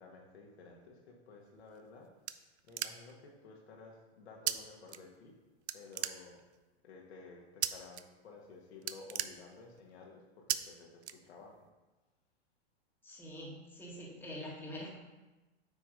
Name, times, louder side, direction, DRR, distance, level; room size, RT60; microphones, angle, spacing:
voice 1, 0.0-2.1 2.6-5.4 5.7-6.4 6.8-11.6, left 4 dB, 75° left, -1 dB, 1.7 m, -54 dB
sound 1, 1.6-3.3 4.5-4.6 4.9-5.4 5.7-6.6 7.6-8.0 8.3-8.5 8.8-9.9 10.5-10.6 11.0-11.7, right 11 dB, 80° right, 0.5 m, -37 dB
voice 2, 13.0-15.0, left 1 dB, 5° left, -4 dB, 1.5 m, -45 dB
8.9 x 3.0 x 5.1 m, 1.1 s
hypercardioid pair, 125°, 33 cm